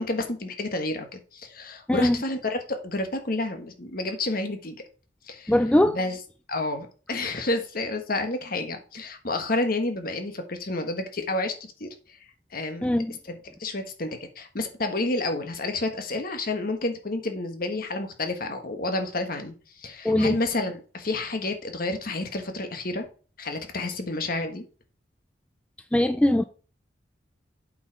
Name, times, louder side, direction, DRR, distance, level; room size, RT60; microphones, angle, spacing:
voice 1, 0.0-4.8 5.3-5.5 5.8-6.2 6.5-11.5 11.8-12.2 12.5-12.9 13.3-23.1 23.4-24.6, left 2 dB, 50° left, 1.4 m, -30 dB
voice 2, 5.5-6.0 12.8-13.1 20.0-20.4 25.9-26.4, left 1 dB, 5° left, 0.3 m, -21 dB
8.2 x 4.9 x 4.7 m
head